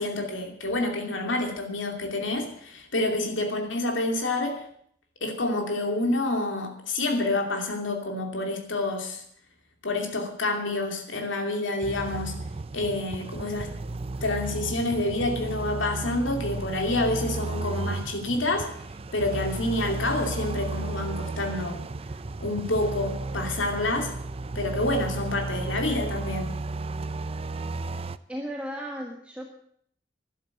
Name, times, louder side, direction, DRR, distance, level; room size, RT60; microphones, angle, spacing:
voice 1, 0.0-4.7 5.2-9.2 9.8-12.4 12.7-13.7 14.2-18.7 19.1-21.8 22.4-24.1 24.5-26.5, left 2 dB, 90° left, 3 dB, 2.7 m, -28 dB
sound 1, 11.8-28.2, right 2 dB, 30° right, 0.5 m, -33 dB
voice 2, 28.3-29.5, equal, 5° right, 0 dB, 1.5 m, -35 dB
12.5 x 12.0 x 7.8 m, 0.66 s
head